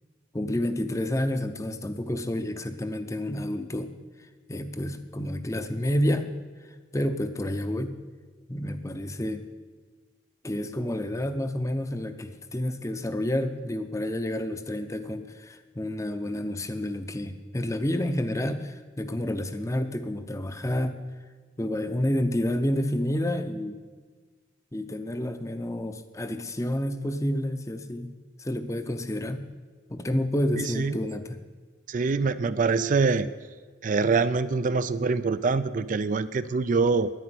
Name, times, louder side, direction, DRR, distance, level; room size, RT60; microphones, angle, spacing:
voice 1, 0.3-3.9 4.5-6.4 6.9-8.0 8.5-9.5 10.4-21.0 21.6-23.8 24.7-28.1 28.4-29.5 29.9-31.4, left 1 dB, 15° left, 9 dB, 0.7 m, -29 dB
voice 2, 30.5-31.0 31.9-33.3 33.8-37.1, right 4 dB, 45° right, 13 dB, 0.4 m, -24 dB
10.5 x 9.9 x 9.4 m, 1.5 s
head